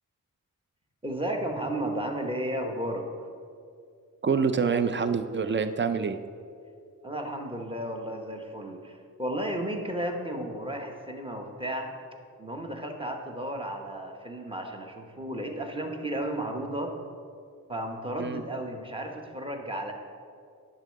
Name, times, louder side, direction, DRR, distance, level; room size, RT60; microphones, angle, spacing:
voice 1, 1.0-3.1 7.0-11.9 12.4-16.9 17.7-19.9, right 1 dB, 15° right, 3 dB, 0.9 m, -33 dB
voice 2, 4.2-6.2 18.2-18.4, right 5 dB, 35° right, 10 dB, 0.5 m, -26 dB
10.5 x 3.8 x 6.4 m, 2.3 s
wide cardioid pair, 110°, 34 cm